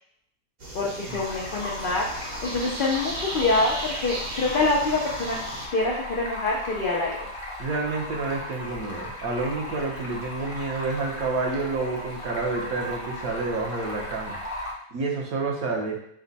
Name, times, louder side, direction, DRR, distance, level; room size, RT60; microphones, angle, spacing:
sound 1, 0.6-5.7, right 1 dB, 40° right, 1.0 m, -36 dB
voice 1, 0.7-5.4 5.7-7.3, left 2 dB, 65° left, -4 dB, 0.5 m, -26 dB
Stream, 1.1-14.7, left 1 dB, 25° left, 0.7 m, -37 dB
voice 2, 7.6-14.4 14.9-15.9, right 3 dB, 60° right, 0 dB, 1.3 m, -29 dB
5.2 x 2.2 x 3.9 m, 0.71 s
omnidirectional pair, 1.8 m